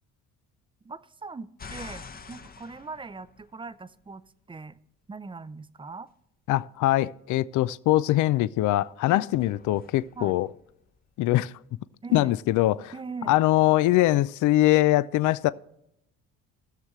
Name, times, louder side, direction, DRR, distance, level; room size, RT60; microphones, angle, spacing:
voice 1, 0.8-4.8 5.1-6.1 9.1-9.2 10.2-10.4 12.0-12.3 12.9-13.4, right 4 dB, 15° right, 0.5 m, -40 dB
sound 1, 1.6-4.0 9.3-11.4, left 5 dB, 25° left, 0.8 m, -46 dB
voice 2, 6.5-10.5 11.2-11.5 12.1-12.9 13.3-15.5, left 15 dB, 60° left, 0.4 m, -22 dB
18.5 x 6.5 x 3.1 m
cardioid pair, 90°, 34 cm